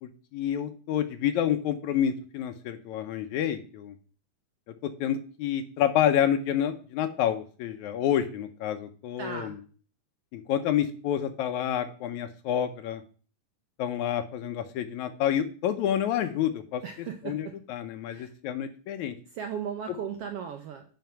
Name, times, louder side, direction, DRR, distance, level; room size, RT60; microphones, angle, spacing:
voice 1, 0.0-4.0 4.8-9.6 10.3-13.0 13.8-16.8 17.3-19.2, left 10 dB, 80° left, 8 dB, 1.9 m, -28 dB
voice 2, 9.2-9.6 16.8-17.6 18.1-18.3 19.3-20.8, right 7 dB, 75° right, 5 dB, 1.4 m, -37 dB
9.3 x 4.5 x 5.7 m, 0.41 s
omnidirectional pair, 3.5 m